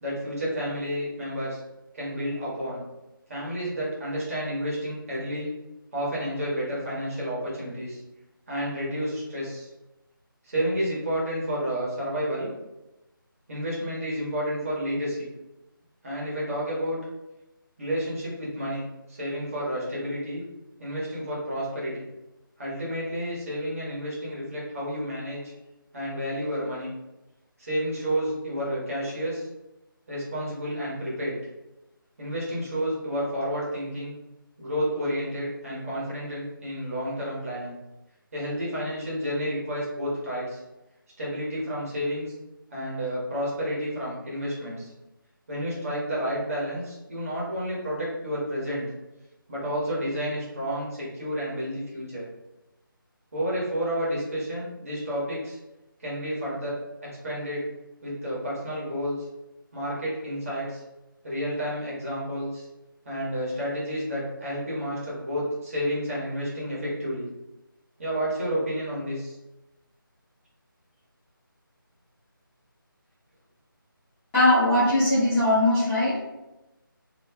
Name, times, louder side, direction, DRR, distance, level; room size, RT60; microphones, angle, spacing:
voice 1, 0.0-1.6 1.9-2.8 3.3-5.5 5.9-8.0 8.5-9.7 10.4-12.5 13.5-15.3 16.0-17.0 17.8-18.8 19.1-20.4 20.8-22.0 22.6-25.5 25.9-26.9 27.6-29.5 30.1-31.4 32.2-34.1 34.6-37.8 38.3-40.6 41.2-42.3 42.7-44.9 45.5-48.9 49.5-52.2 53.3-55.6 56.0-56.8 57.0-57.7 58.0-59.3 59.7-60.8 61.2-62.7 63.0-67.2 68.0-69.4, equal, 40° right, -7 dB, 1.3 m, -30 dB
voice 2, 74.3-76.2, left 1 dB, 5° left, -18 dB, 0.5 m, -20 dB
3.1 x 2.8 x 2.3 m, 0.98 s
figure-of-eight pair, 160°, 12 cm